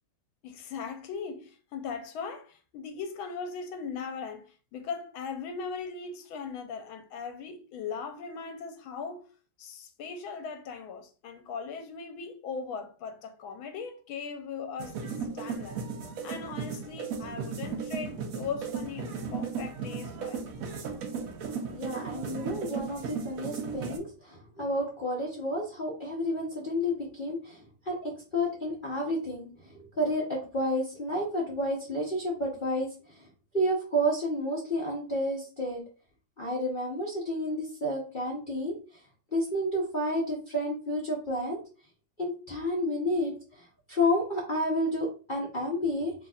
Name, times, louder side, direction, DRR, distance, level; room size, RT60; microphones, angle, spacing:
voice 1, 0.4-9.2 9.6-15.8 16.2-20.5, left 5 dB, 80° left, 1.4 m, -39 dB
sound 1, 14.8-24.0, right 5 dB, 70° right, 0.8 m, -36 dB
voice 2, 21.7-29.5 30.0-33.2 33.5-35.8 36.4-38.7 39.3-41.6 42.2-43.3 43.9-46.1, equal, 45° left, 0.7 m, -30 dB
4.0 x 3.4 x 2.4 m
omnidirectional pair, 2.3 m